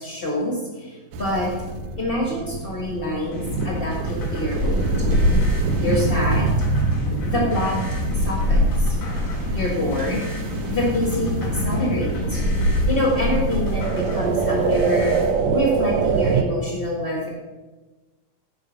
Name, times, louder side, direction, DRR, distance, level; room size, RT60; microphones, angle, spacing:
voice 1, 0.0-1.5 2.0-4.8 5.8-6.5 7.2-7.8 8.2-8.9 9.5-10.3 10.7-15.2 15.5-17.3, left 1 dB, 90° left, -2 dB, 0.5 m, -26 dB
sound 1, 1.1-16.4, right 4 dB, 75° right, 1.6 m, -26 dB
sound 2, 3.3-15.3, left 1 dB, 65° left, 3.6 m, -33 dB
sound 3, 4.5-15.2, left 1 dB, 15° left, 3.8 m, -25 dB
10.0 x 5.3 x 7.1 m, 1.2 s
omnidirectional pair, 3.8 m